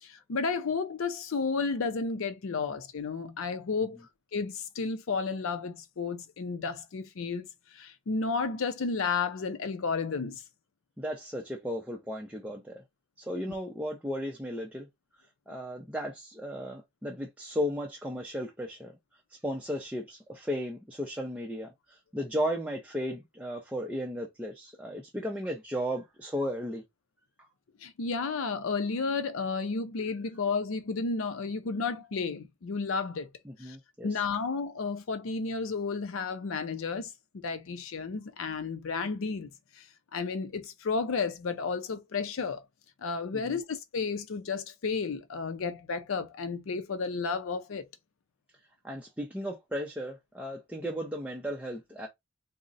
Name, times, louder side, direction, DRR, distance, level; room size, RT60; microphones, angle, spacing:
voice 1, 0.0-4.0 4.3-10.4 27.8-33.3 33.6-33.8 34.0-39.9 40.1-42.6 43.0-47.9, left 4 dB, 70° left, 0.5 m, -32 dB
voice 2, 11.0-12.8 13.2-14.9 15.5-18.9 19.3-26.8 30.1-30.2 33.4-34.3 43.3-43.6 48.8-52.1, equal, 5° right, 0.5 m, -35 dB
3.7 x 2.1 x 3.9 m
head